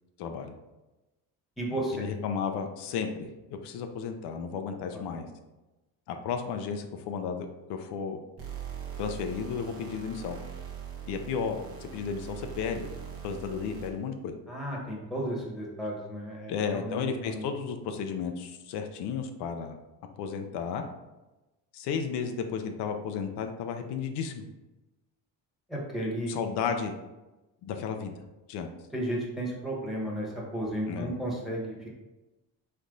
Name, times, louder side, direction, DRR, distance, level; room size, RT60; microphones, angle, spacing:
voice 1, 0.2-0.6 1.9-5.3 6.1-8.2 9.0-10.4 11.1-12.9 13.2-14.3 16.5-19.8 20.2-20.9 21.7-24.4 26.3-26.9 27.6-28.1 28.5-28.7 30.9-31.1, left 6 dB, 90° left, 5 dB, 0.6 m, -33 dB
voice 2, 1.6-2.1 4.9-5.0 14.5-17.4 25.7-26.4 28.9-31.9, right 1 dB, ahead, -4 dB, 1.2 m, -33 dB
sound 1, 8.4-14.1, right 8 dB, 35° right, 0.9 m, -41 dB
4.1 x 3.3 x 3.8 m, 1.1 s
cardioid pair, 140°, 39 cm